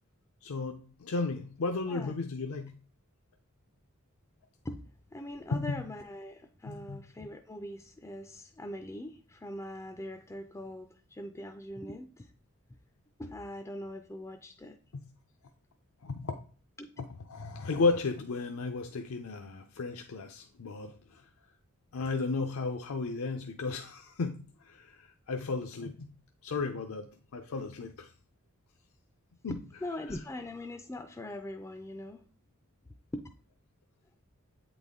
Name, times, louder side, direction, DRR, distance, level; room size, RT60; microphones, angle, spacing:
voice 1, 0.4-2.7 5.5-5.8 6.7-7.0 14.9-15.0 16.0-16.3 17.0-21.2 21.9-26.1 26.4-28.1 29.4-29.5, left 3 dB, 75° left, 0.5 m, -34 dB
voice 2, 5.1-12.3 13.2-14.8 16.8-16.9 29.5-32.2 33.1-33.2, left 1 dB, 15° left, 0.4 m, -41 dB
8.2 x 4.0 x 3.6 m
head